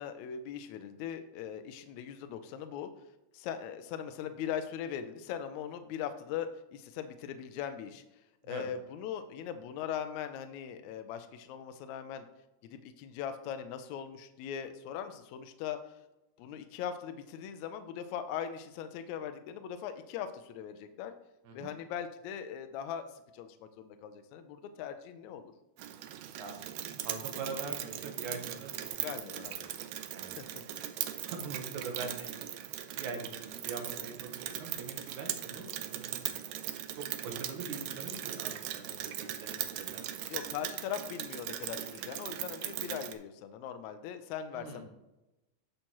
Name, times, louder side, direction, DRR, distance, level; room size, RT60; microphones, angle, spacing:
voice 1, 0.0-2.9 3.3-8.0 8.4-12.3 12.6-15.8 16.4-21.1 21.5-23.0 23.3-25.5 29.0-29.7 30.4-30.5 35.6-35.7 40.3-44.8, left 9 dB, 80° left, 8 dB, 1.7 m, -40 dB
Rain, 25.8-43.1, right 11 dB, 90° right, 1.5 m, -39 dB
voice 2, 27.0-29.5 30.1-30.4 31.2-32.4 32.9-36.3 37.0-40.2 44.5-44.8, right 4 dB, 75° right, 3 dB, 2.5 m, -43 dB
10.0 x 6.6 x 3.0 m, 0.98 s
omnidirectional pair, 3.6 m